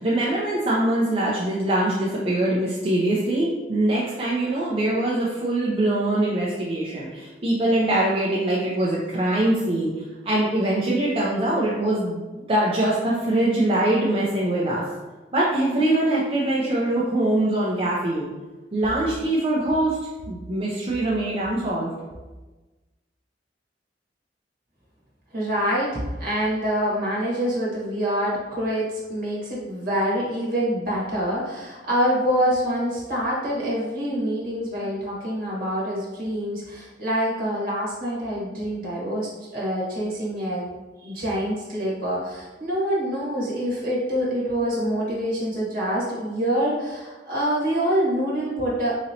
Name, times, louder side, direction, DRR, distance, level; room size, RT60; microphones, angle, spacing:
voice 1, 0.0-14.8 15.3-18.3 18.7-20.0 20.3-21.9, right 1 dB, 30° right, -6 dB, 0.5 m, -23 dB
voice 2, 25.3-40.7 41.0-49.0, equal, 55° right, -5 dB, 1.3 m, -26 dB
3.9 x 2.9 x 2.8 m, 1.2 s
head